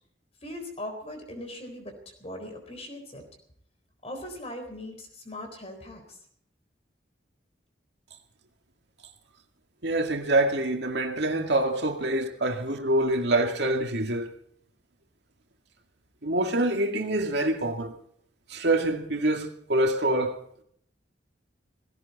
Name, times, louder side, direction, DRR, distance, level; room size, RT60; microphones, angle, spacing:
voice 1, 0.4-1.9 2.2-3.2 4.0-6.2, left 1 dB, 35° left, 4.0 m, -39 dB
voice 2, 9.8-14.3 16.2-17.9 18.5-20.4, right 1 dB, 65° right, 2.2 m, -25 dB
17.5 x 17.0 x 4.2 m
head